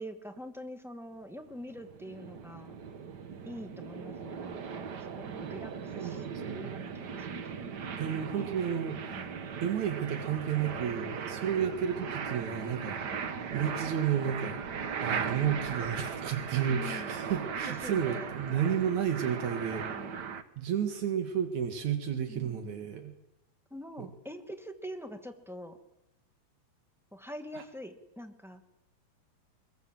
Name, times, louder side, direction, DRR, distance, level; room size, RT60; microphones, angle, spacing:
voice 1, 0.0-2.7 3.4-7.5 8.4-8.5 9.1-9.5 12.9-13.3 15.1-15.8 16.7-17.2 17.7-18.4 19.7-20.2 22.3-22.8 23.7-25.8 27.1-28.6, equal, ahead, 6 dB, 1.7 m, -45 dB
sound 1, 1.5-20.4, right 6 dB, 50° right, 1.4 m, -38 dB
voice 2, 6.0-6.8 8.0-9.2 9.6-13.0 13.5-14.6 15.0-19.9 20.6-23.1 24.0-24.1, right 8 dB, 75° right, 7 dB, 3.3 m, -32 dB
23.5 x 22.5 x 7.8 m, 0.86 s
omnidirectional pair, 3.3 m